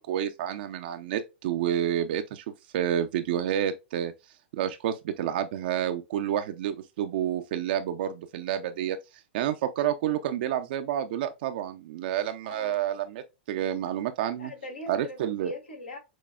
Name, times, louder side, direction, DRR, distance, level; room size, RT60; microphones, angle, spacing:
voice 1, 0.0-4.1 4.5-9.0 9.3-14.5 14.9-15.5, right 10 dB, 55° right, 0.5 m, -29 dB
voice 2, 14.4-16.0, left 1 dB, 85° left, 1.9 m, -41 dB
6.1 x 2.3 x 2.3 m
hypercardioid pair, 110°, 6 cm